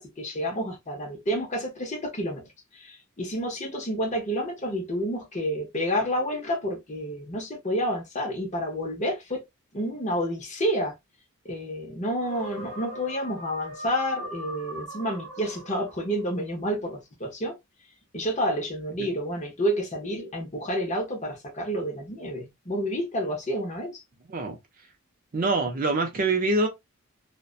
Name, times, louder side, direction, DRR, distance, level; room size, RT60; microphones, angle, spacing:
voice 1, 0.0-2.4 2.7-9.4 9.7-11.0 11.4-17.6 18.1-24.0, equal, 30° left, 0.7 m, -29 dB
sound 1, 12.1-16.2, right 1 dB, 80° right, 0.7 m, -39 dB
voice 2, 25.3-26.7, right 2 dB, 40° right, 0.5 m, -24 dB
2.5 x 2.1 x 2.3 m
head